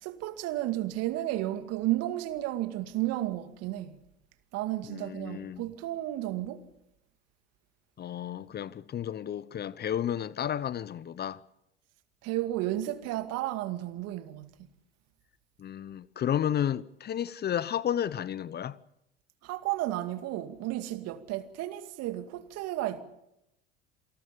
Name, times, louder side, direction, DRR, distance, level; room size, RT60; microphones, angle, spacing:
voice 1, 0.0-4.0 4.5-6.6 12.2-14.6 19.4-23.0, right 15 dB, 55° right, 2.3 m, -33 dB
voice 2, 4.9-5.6 8.0-11.4 15.6-18.8, left 10 dB, 35° left, 0.8 m, -32 dB
28.0 x 18.5 x 7.0 m
hypercardioid pair, 75°, 30 cm